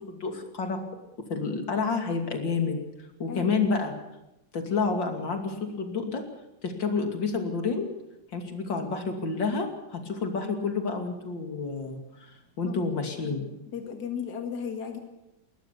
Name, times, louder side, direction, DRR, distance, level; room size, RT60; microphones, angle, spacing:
voice 1, 0.1-0.9 1.2-2.8 3.2-3.9 4.5-6.3 6.6-7.9 8.3-12.0 12.6-13.5, left 4 dB, 85° left, 4 dB, 3.3 m, -29 dB
voice 2, 13.7-15.0, left 7 dB, 60° left, 4 dB, 2.5 m, -34 dB
21.0 x 19.5 x 7.0 m, 0.93 s
omnidirectional pair, 2.0 m